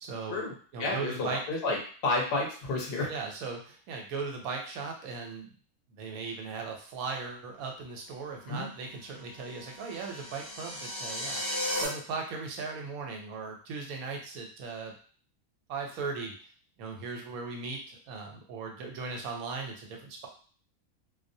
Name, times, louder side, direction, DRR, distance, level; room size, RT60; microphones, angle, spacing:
voice 1, 0.0-0.4 0.7-1.4 3.1-5.5 5.9-11.4 11.7-14.9 15.7-16.4 16.8-20.3, right 4 dB, 80° right, 1 dB, 1.0 m, -38 dB
voice 2, 0.8-1.8 2.0-3.1 8.5-8.7, left 2 dB, 50° left, -1 dB, 0.8 m, -30 dB
sound 1, 9.3-11.9, left 1 dB, 20° left, 0.6 m, -35 dB
2.5 x 2.0 x 2.6 m, 0.43 s
omnidirectional pair, 1.5 m